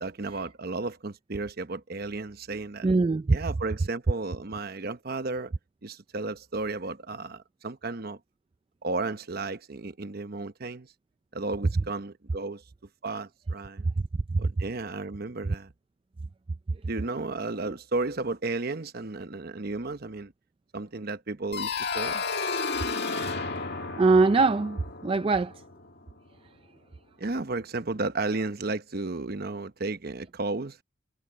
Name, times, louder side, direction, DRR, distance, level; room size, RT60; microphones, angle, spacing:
voice 1, 0.0-2.9 3.3-5.5 5.8-8.2 8.8-10.9 11.3-12.6 13.0-13.9 14.4-15.7 16.8-20.3 20.7-22.2 27.2-30.8, right 3 dB, 50° right, 1.0 m, -33 dB
voice 2, 2.8-3.4 14.3-14.4 24.0-25.5, right 3 dB, 25° right, 0.3 m, -22 dB
sound 1, 21.5-26.2, left 4 dB, 55° left, 1.9 m, -32 dB
head